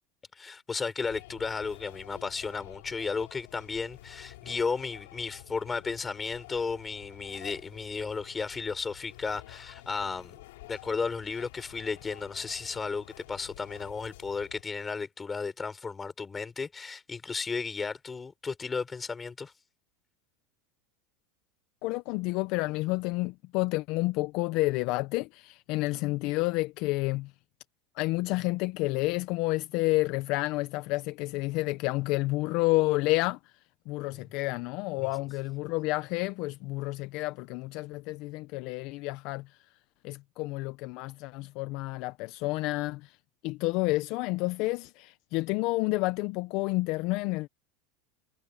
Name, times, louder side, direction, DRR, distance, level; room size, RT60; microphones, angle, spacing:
voice 1, 0.3-10.4 10.7-19.5, left 4 dB, 10° left, 3.8 m, -34 dB
sound 1, 1.0-14.6, left 17 dB, 80° left, 2.8 m, -50 dB
voice 2, 21.8-27.3 27.9-33.5 33.9-39.7 40.0-43.2 43.4-47.5, left 21 dB, 45° left, 0.4 m, -30 dB
supercardioid pair, 175°, 0 cm